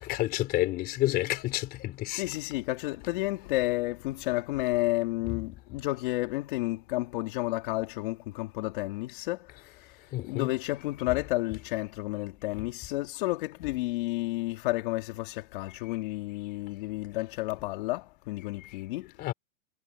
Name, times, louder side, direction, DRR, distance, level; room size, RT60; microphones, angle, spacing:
voice 1, 0.0-2.2 5.3-5.4 10.1-10.5 19.2-19.3, left 16 dB, 25° left, 4.1 m, -29 dB
voice 2, 2.1-19.1, left 19 dB, 40° left, 2.5 m, -31 dB
hypercardioid pair, 155°, 39 cm